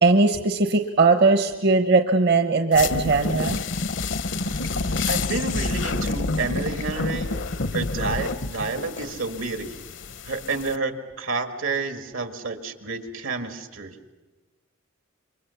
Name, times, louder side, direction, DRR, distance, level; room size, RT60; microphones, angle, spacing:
voice 1, 0.0-3.6, right 3 dB, 55° right, 7 dB, 0.9 m, -19 dB
sound 1, 2.7-10.8, left 3 dB, 65° left, 0.8 m, -28 dB
voice 2, 5.1-7.3 7.7-9.8 10.2-13.9, right 4 dB, 80° right, 8 dB, 1.9 m, -30 dB
27.0 x 23.5 x 7.0 m, 1.2 s
head